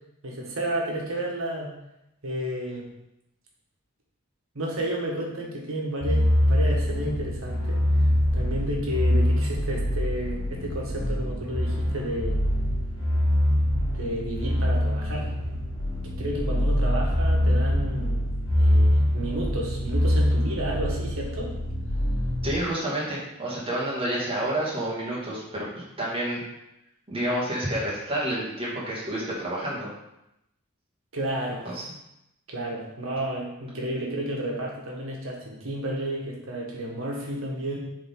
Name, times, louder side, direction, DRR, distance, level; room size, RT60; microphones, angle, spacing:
voice 1, 0.2-1.7 2.2-2.9 4.5-12.4 13.7-15.3 16.0-18.3 18.5-21.5 31.1-31.6 32.5-37.8, right 1 dB, 70° right, -2 dB, 1.6 m, -32 dB
sound 1, 6.0-22.5, equal, 25° left, 2.2 m, -24 dB
voice 2, 22.4-26.4 27.1-29.9 31.6-31.8, right 1 dB, 25° right, -7 dB, 2.1 m, -29 dB
6.4 x 3.9 x 3.9 m, 0.86 s
head